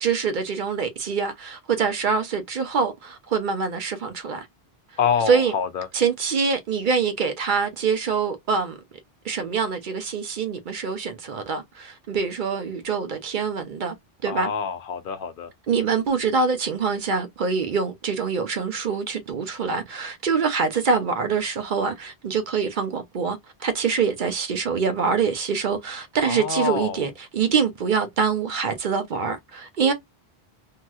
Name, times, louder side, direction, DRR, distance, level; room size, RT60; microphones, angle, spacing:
voice 1, 0.0-4.5 5.3-5.5 5.9-8.8 9.2-13.9 14.2-14.5 15.7-29.9, right 5 dB, 55° right, 0.7 m, -25 dB
voice 2, 5.0-5.9 14.3-15.5 26.2-27.1, left 7 dB, 65° left, 0.7 m, -26 dB
3.0 x 2.8 x 2.2 m
omnidirectional pair, 1.0 m